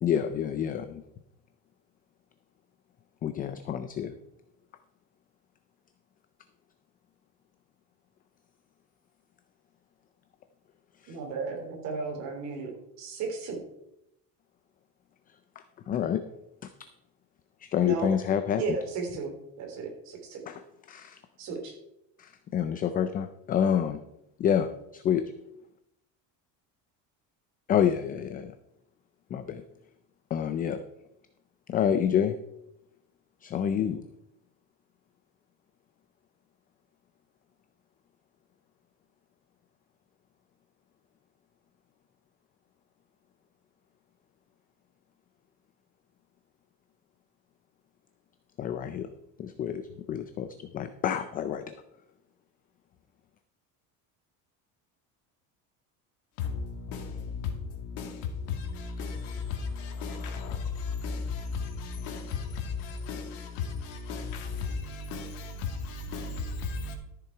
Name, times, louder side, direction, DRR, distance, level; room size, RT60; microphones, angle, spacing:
voice 1, 0.0-1.0 3.2-4.1 11.0-11.2 15.9-16.2 16.6-16.7 17.6-18.6 20.5-20.6 20.9-21.2 22.2-24.0 24.4-25.2 27.7-28.5 29.3-29.6 30.3-30.8 31.7-32.3 33.4-34.0 48.6-49.1 49.4-49.8 50.1-50.5 50.7-51.7, left 9 dB, 25° left, 0.4 m, -28 dB
voice 2, 11.1-12.7 13.0-13.6 17.8-18.1 18.6-20.4 21.4-21.7, right 4 dB, 45° right, 3.4 m, -34 dB
voice 3, 56.4-67.0, left 5 dB, 75° left, 2.3 m, -35 dB
13.5 x 6.9 x 4.6 m
cardioid pair, 165°, 38 cm